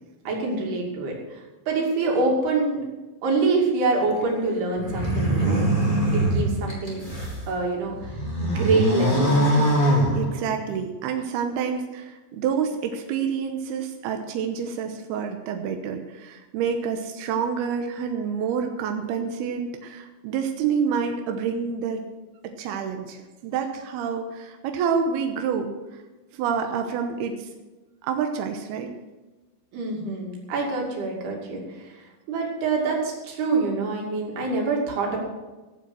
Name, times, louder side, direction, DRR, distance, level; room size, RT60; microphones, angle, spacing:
voice 1, 0.3-1.4 1.7-2.8 3.2-5.6 6.1-7.0 7.5-8.1 8.4-9.4 29.7-35.2, right 3 dB, 60° right, -1 dB, 4.2 m, -25 dB
sound 1, 4.8-7.4 7.9-10.7, right 1 dB, 10° left, 2.8 m, -22 dB
voice 2, 10.1-22.0 22.4-26.0 26.3-27.5 28.0-28.9, right 6 dB, 75° right, 4 dB, 2.4 m, -28 dB
15.5 x 8.4 x 6.2 m, 1.2 s
omnidirectional pair, 5.7 m